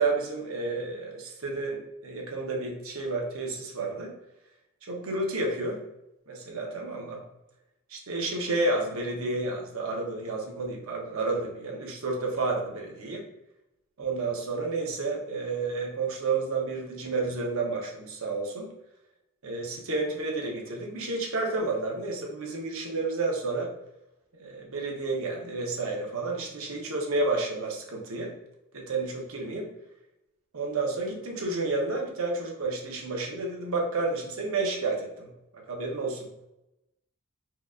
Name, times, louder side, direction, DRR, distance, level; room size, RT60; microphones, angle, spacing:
voice 1, 0.0-4.2 4.9-5.8 6.3-7.2 7.9-13.2 14.0-18.7 19.4-23.7 24.4-28.3 28.7-29.7 30.5-36.3, right 3 dB, 65° right, 0 dB, 0.8 m, -31 dB
4.5 x 2.4 x 2.4 m, 0.88 s
head